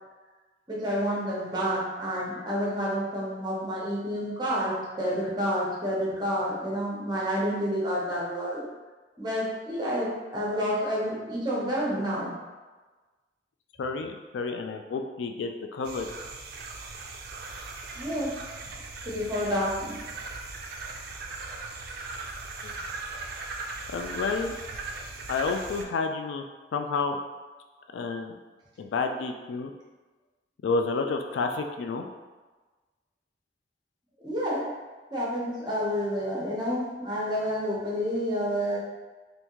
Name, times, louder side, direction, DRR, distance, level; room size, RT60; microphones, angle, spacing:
voice 1, 0.7-8.6 9.2-12.3 18.0-18.4 19.0-20.0 34.2-34.7 35.1-38.8, equal, 25° right, -5 dB, 0.8 m, -29 dB
voice 2, 13.8-16.1 22.6-22.7 23.9-24.5 25.3-26.4 26.7-27.2 27.9-28.4 28.8-29.7 30.6-32.1, left 4 dB, 80° left, 5 dB, 0.3 m, -30 dB
sound 1, 15.8-25.8, right 3 dB, 55° right, 0.4 m, -39 dB
3.4 x 2.6 x 2.9 m, 1.3 s
head